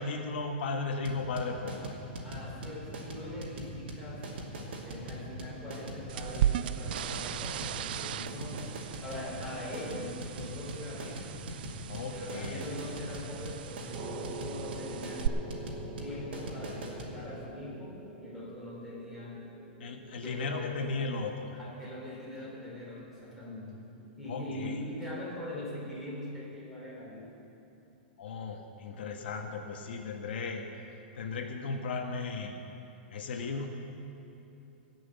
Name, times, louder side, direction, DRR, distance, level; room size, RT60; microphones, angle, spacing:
voice 1, 0.0-2.0 11.9-12.6 15.7-15.8 19.8-21.5 24.3-24.8 28.2-30.6 31.1-32.6 33.1-33.7, left 4 dB, 70° left, 3 dB, 1.4 m, -36 dB
sound 1, 1.0-17.1, right 1 dB, 75° right, 2.8 m, -41 dB
voice 2, 2.2-4.3 4.8-8.7 9.0-11.3 12.1-15.3 16.0-19.4 20.2-20.8 21.5-23.7 24.2-27.3, left 1 dB, ahead, -7 dB, 3.7 m, -42 dB
sound 2, 6.1-15.3, right 11 dB, 60° right, 0.3 m, -37 dB
sound 3, 13.9-25.8, right 2 dB, 30° right, 0.9 m, -47 dB
18.0 x 6.2 x 8.1 m, 2.9 s
hypercardioid pair, 155°, 6 cm